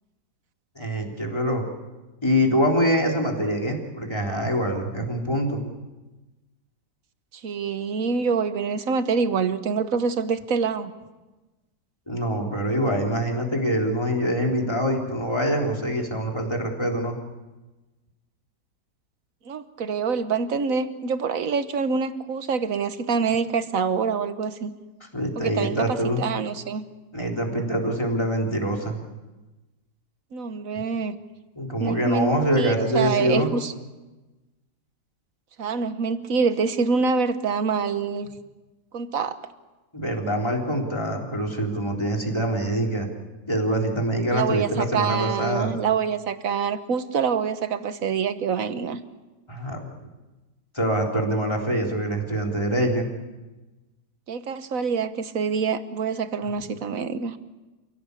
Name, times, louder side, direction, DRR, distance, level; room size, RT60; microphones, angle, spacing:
voice 1, 0.8-1.7 2.2-5.6 12.1-17.2 25.1-26.2 27.1-29.0 31.6-33.5 39.9-43.1 43.5-45.7 49.5-49.9 50.7-53.1, equal, 15° left, 0 dB, 3.8 m, -24 dB
voice 2, 7.4-10.9 19.4-24.7 25.4-26.8 30.3-31.2 31.8-33.7 35.6-38.3 38.9-39.4 44.3-49.0 54.3-57.4, right 5 dB, 55° right, 11 dB, 1.5 m, -26 dB
29.0 x 17.0 x 8.4 m, 1.1 s
omnidirectional pair, 1.9 m